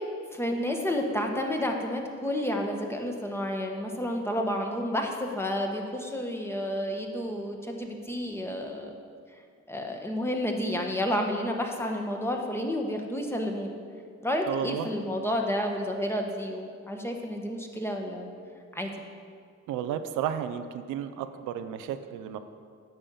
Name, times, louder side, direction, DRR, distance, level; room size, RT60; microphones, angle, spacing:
voice 1, 0.3-8.9 9.7-13.7 14.2-18.3 18.7-18.9, equal, 10° left, 2 dB, 1.2 m, -30 dB
voice 2, 14.5-14.9 19.7-22.4, right 9 dB, 90° right, 9 dB, 0.6 m, -32 dB
9.0 x 5.3 x 6.9 m, 2.2 s
cardioid pair, 90°, 30 cm